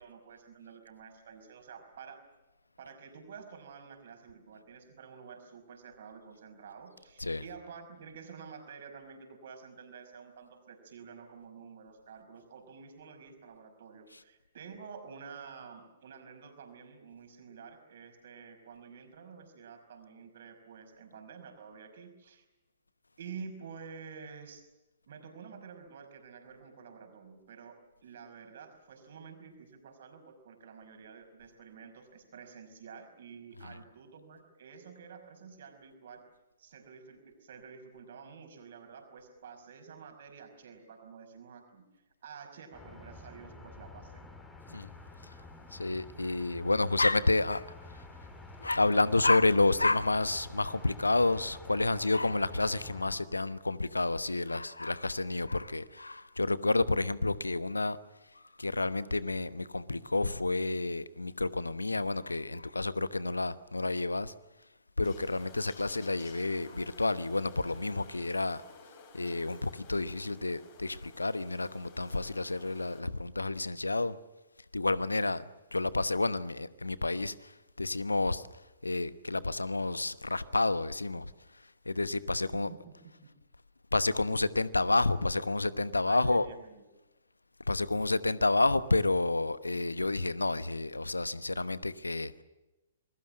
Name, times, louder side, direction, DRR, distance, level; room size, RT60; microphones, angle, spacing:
voice 1, 0.0-2.2 2.8-22.4 23.2-24.6 25.1-36.2 36.6-44.2 82.3-83.3 86.1-86.8, right 6 dB, 50° right, 5.4 m, -50 dB
sound 1, 42.7-53.2, left 2 dB, 10° left, 4.4 m, -49 dB
voice 2, 45.7-48.0 48.6-58.0 58.3-64.3 65.0-68.6 69.1-74.2 74.7-75.4 75.7-78.5 78.8-82.7 83.9-86.5 87.7-92.4, left 2 dB, 80° left, 1.1 m, -30 dB
sound 2, 65.0-73.0, left 4 dB, 40° left, 7.3 m, -54 dB
27.5 x 21.5 x 7.7 m
figure-of-eight pair, 115°, 0 cm